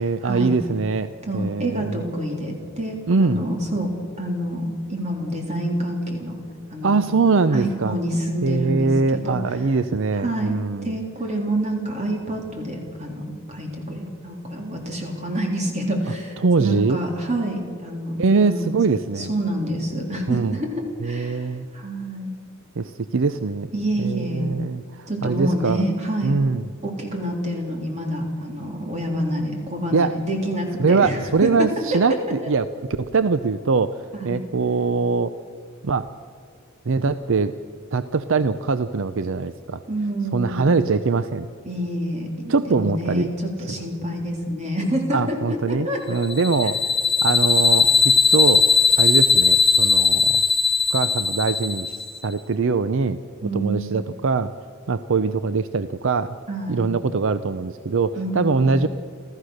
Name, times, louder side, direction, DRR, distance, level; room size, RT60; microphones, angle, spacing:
voice 1, 0.0-1.9 3.1-3.4 6.8-7.9 8.4-10.9 16.4-17.0 18.2-19.3 20.3-20.6 21.0-21.7 22.8-23.7 24.0-25.9 26.2-26.6 29.9-30.2 30.8-32.7 33.0-35.3 35.8-36.1 36.9-37.5 37.9-39.8 40.3-41.5 42.5-43.3 45.1-46.8 47.2-48.7 49.0-50.4 50.9-53.2 53.5-54.5 54.9-56.4 56.7-58.9, right 4 dB, 65° right, 12 dB, 0.6 m, -22 dB
voice 2, 1.3-3.9 4.2-6.3 6.7-7.0 7.5-9.4 10.2-10.5 10.8-18.7 19.2-22.3 23.7-24.5 25.1-26.3 26.8-32.0 34.2-34.4 39.9-40.8 41.7-46.0 53.4-54.1 56.5-56.9 58.2-58.8, right 1 dB, 35° right, 1 dB, 3.5 m, -27 dB
sound 1, 46.2-52.2, left 4 dB, 25° left, 1.2 m, -18 dB
29.5 x 13.5 x 6.5 m, 2.2 s
head